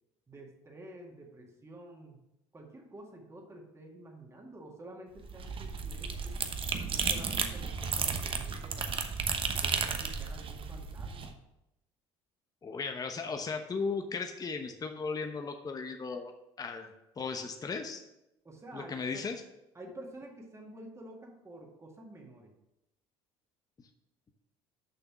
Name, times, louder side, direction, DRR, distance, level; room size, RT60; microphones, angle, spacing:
voice 1, 0.3-2.2 2.5-6.4 6.7-9.1 9.6-11.4 18.4-19.3 19.7-22.5, right 1 dB, 20° right, 0 dB, 2.0 m, -50 dB
sound 1, 5.2-11.3, right 5 dB, 40° right, 1.0 m, -33 dB
voice 2, 12.6-16.3 16.6-16.9 17.2-18.0 18.7-19.4, left 4 dB, 30° left, 5 dB, 0.9 m, -36 dB
7.0 x 5.9 x 6.1 m, 0.89 s
supercardioid pair, 80°, 14 cm